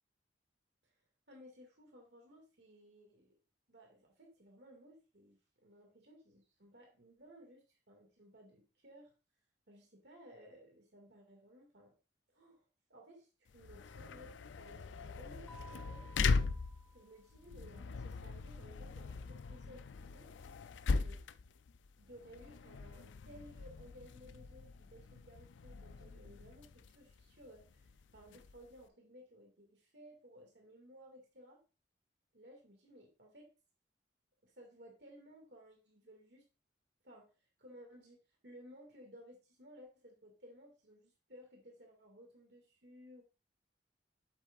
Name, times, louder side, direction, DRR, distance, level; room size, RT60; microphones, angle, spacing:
voice 1, 1.3-3.4 3.7-9.1 9.7-12.0 12.3-16.1 16.9-20.3 21.0-21.2 22.0-31.6 32.3-33.5 34.4-36.5 37.0-43.2, equal, 65° right, 1 dB, 2.2 m, -58 dB
sound 1, 13.5-28.8, left 4 dB, 90° left, 0.4 m, -40 dB
Mallet percussion, 15.5-17.5, right 4 dB, 5° left, 0.9 m, -58 dB
8.1 x 7.5 x 2.5 m, 0.32 s
head